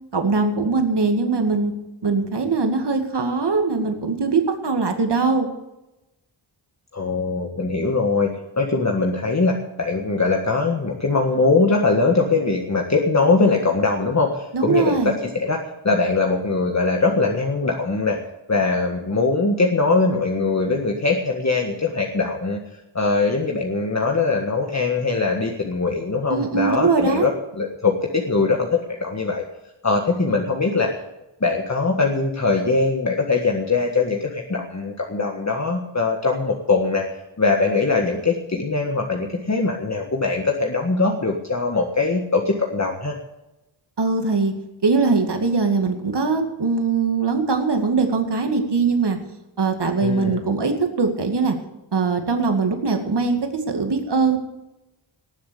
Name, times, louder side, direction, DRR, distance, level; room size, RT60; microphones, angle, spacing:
voice 1, 0.1-1.7 2.0-5.5 14.5-15.1 26.3-27.3 44.0-44.5 44.8-49.2 49.6-51.5 51.9-54.4, right 4 dB, 60° right, 5 dB, 2.2 m, -21 dB
voice 2, 6.9-8.3 8.6-18.2 18.5-22.6 22.9-27.3 27.6-29.4 29.8-30.9 31.4-37.0 37.4-43.2 50.0-50.4, left 3 dB, 35° left, 1 dB, 1.7 m, -21 dB
19.0 x 7.3 x 6.9 m, 0.97 s
wide cardioid pair, 95°, 47 cm